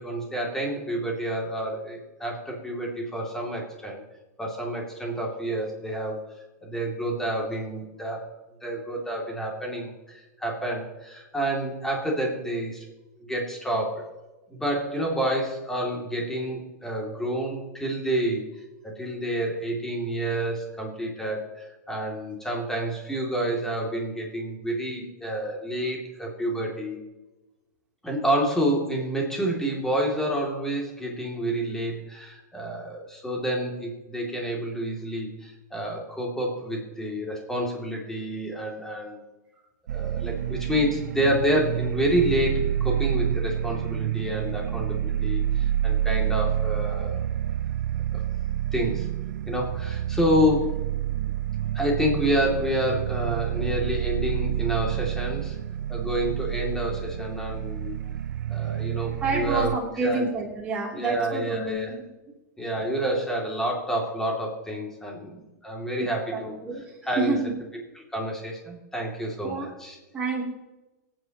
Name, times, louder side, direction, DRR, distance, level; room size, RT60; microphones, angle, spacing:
voice 1, 0.0-4.0 4.4-6.2 6.6-8.3 8.6-12.8 13.2-14.1 14.5-18.5 18.8-27.0 28.0-39.2 39.9-47.2 48.1-48.2 48.7-49.1 49.5-50.8 51.7-55.6 55.9-58.0 58.5-59.7 60.0-60.3 60.9-61.9 62.6-67.4 68.1-70.0, equal, 5° left, -2 dB, 2.7 m, -28 dB
sound 1, 39.9-59.8, right 11 dB, 90° right, 0.4 m, -28 dB
voice 2, 59.2-61.8 66.0-66.8 67.1-67.6 69.4-69.7 70.1-70.4, right 3 dB, 10° right, -4 dB, 3.2 m, -28 dB
24.5 x 9.3 x 3.0 m, 1.1 s
supercardioid pair, 155°, 9 cm